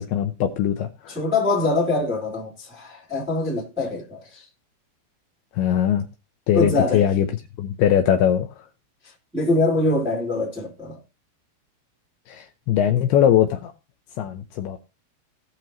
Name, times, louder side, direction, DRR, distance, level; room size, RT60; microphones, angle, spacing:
voice 1, 0.0-1.2 5.5-6.1 6.5-7.3 7.6-8.6 12.3-13.7 14.2-14.8, left 10 dB, 80° left, 2.6 m, -21 dB
voice 2, 1.1-4.4 6.5-7.0 9.3-11.0, left 2 dB, ahead, 1.4 m, -23 dB
17.5 x 6.0 x 2.9 m
omnidirectional pair, 4.8 m